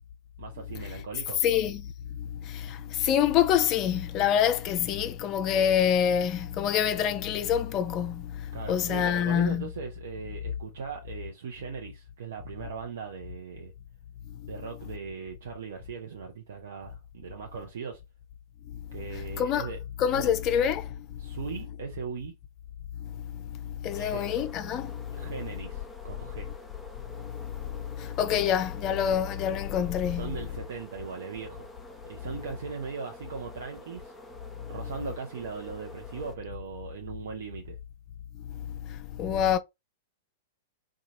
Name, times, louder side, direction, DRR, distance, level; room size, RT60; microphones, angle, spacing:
voice 1, 0.4-1.4 8.5-13.7 14.5-18.0 18.9-19.8 20.1-20.3 21.2-22.3 23.9-24.2 25.1-26.5 30.2-31.7 32.0-34.1 34.7-37.8, right 6 dB, 60° right, 0.6 m, -39 dB
voice 2, 1.4-1.8 2.5-8.3 8.7-9.7 19.1-19.7 20.0-20.9 23.8-24.9 28.0-30.3 39.2-39.6, left 9 dB, 35° left, 0.5 m, -26 dB
sound 1, 23.9-36.4, equal, 5° left, 0.8 m, -48 dB
2.8 x 2.3 x 2.8 m
figure-of-eight pair, 100°, 0 cm